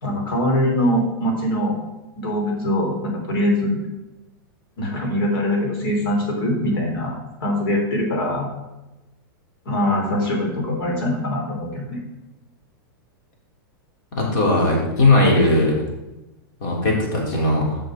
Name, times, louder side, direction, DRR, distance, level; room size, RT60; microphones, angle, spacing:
voice 1, 0.0-1.7 2.2-3.8 4.8-7.1 7.4-8.5 9.6-12.0, left 1 dB, 75° left, 1 dB, 3.4 m, -22 dB
voice 2, 14.1-15.8 16.6-17.8, left 2 dB, 60° left, -2 dB, 3.6 m, -18 dB
6.8 x 6.3 x 6.4 m, 1.0 s
hypercardioid pair, 140°, 12 cm